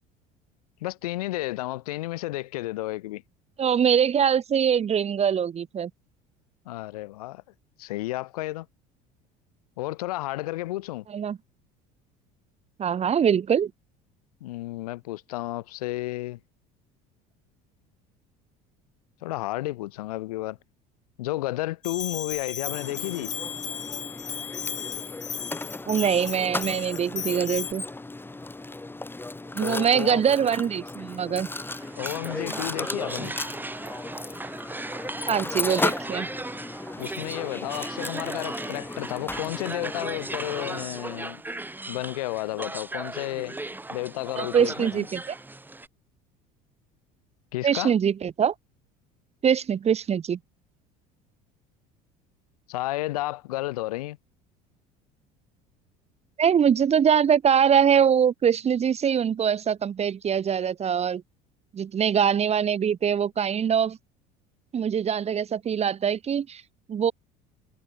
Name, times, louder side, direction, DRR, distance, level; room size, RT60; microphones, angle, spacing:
voice 1, 0.8-3.2 6.7-7.4 7.8-8.7 9.8-11.1 14.4-16.4 19.2-20.6 21.2-23.3 29.6-30.2 32.0-33.3 37.0-41.4 41.9-43.6 43.9-45.1 47.5-47.9 52.7-54.2, left 17 dB, 85° left, 2.2 m, -32 dB
voice 2, 3.6-5.9 11.1-11.4 12.8-13.7 25.9-27.8 29.5-31.5 35.3-36.3 44.4-45.3 47.6-48.5 49.4-50.4 56.4-61.2 61.7-64.0 64.7-66.6 66.9-67.1, right 8 dB, 35° right, 1.3 m, -23 dB
Bell, 21.8-27.7, left 9 dB, 40° left, 4.9 m, -35 dB
Mechanisms, 22.7-40.8, left 2 dB, 10° left, 2.4 m, -36 dB
sound 1, 31.5-45.9, right 2 dB, 10° right, 2.3 m, -37 dB
supercardioid pair, 85°, 19 cm